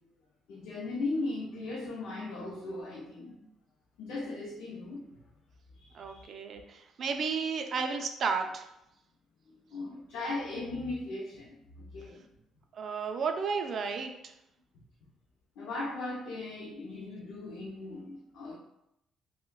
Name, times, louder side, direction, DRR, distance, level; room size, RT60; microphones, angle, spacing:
voice 1, 0.5-3.4 4.0-5.2 5.7-6.3 9.7-12.3 15.6-18.6, left 2 dB, 80° left, -3 dB, 0.5 m, -38 dB
voice 2, 5.9-8.7 12.7-14.3, right 5 dB, 45° right, 5 dB, 0.4 m, -33 dB
5.2 x 2.1 x 2.3 m, 0.82 s
cardioid pair, 160°, 0 cm